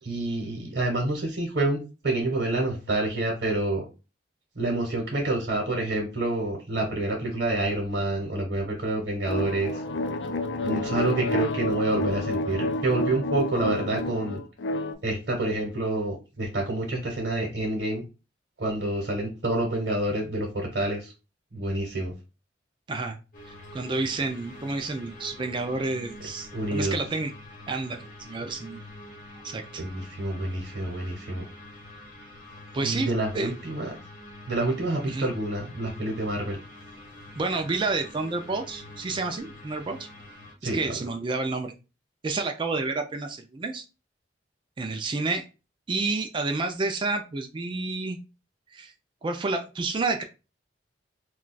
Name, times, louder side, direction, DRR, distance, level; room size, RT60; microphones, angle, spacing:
voice 1, 0.0-3.8 4.6-9.8 10.6-14.4 15.0-18.0 18.6-21.1 21.5-22.1 26.5-27.0 29.8-31.4 32.8-33.9 34.5-36.6 40.6-41.1, right 2 dB, 65° right, 0 dB, 0.9 m, -28 dB
sound 1, 9.3-14.9, left 2 dB, 75° left, 0.4 m, -29 dB
sound 2, 23.3-40.5, left 1 dB, 50° left, 0.9 m, -46 dB
voice 2, 23.7-27.3 27.7-28.8 29.4-29.8 32.7-33.5 35.1-35.3 37.4-40.1 40.6-41.7 42.2-43.8 44.8-45.4 45.9-48.2 48.7-48.9 49.2-50.2, right 3 dB, 25° right, 5 dB, 0.3 m, -29 dB
2.4 x 2.3 x 3.8 m, 0.30 s
head